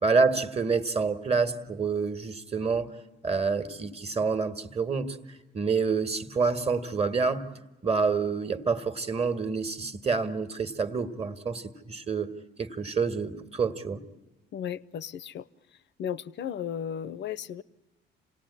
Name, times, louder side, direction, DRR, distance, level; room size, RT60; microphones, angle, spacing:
voice 1, 0.0-2.9 3.2-5.2 5.5-7.5 7.8-12.3 12.6-14.0, right 4 dB, 30° right, 1.7 m, -27 dB
voice 2, 14.5-15.5 16.0-17.6, left 9 dB, 65° left, 0.8 m, -35 dB
27.5 x 18.5 x 9.9 m
cardioid pair, 90°, 20 cm